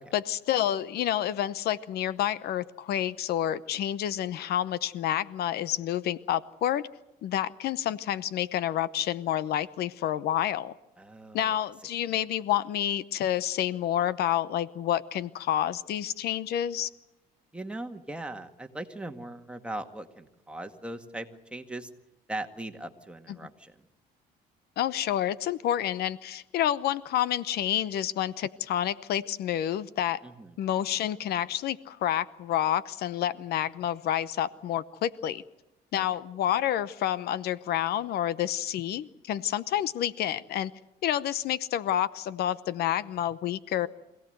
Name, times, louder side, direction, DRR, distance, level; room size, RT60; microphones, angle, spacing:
voice 1, 0.1-6.9 7.2-10.7 11.3-16.9 24.8-30.2 30.6-35.4 35.9-40.7 41.0-43.9, left 11 dB, 70° left, 16 dB, 0.8 m, -29 dB
voice 2, 11.0-11.5 17.5-21.9 22.3-23.7 30.2-30.6 35.9-36.0, right 1 dB, 5° right, 5 dB, 2.0 m, -39 dB
25.5 x 17.0 x 7.9 m, 0.96 s
cardioid pair, 110°, 17 cm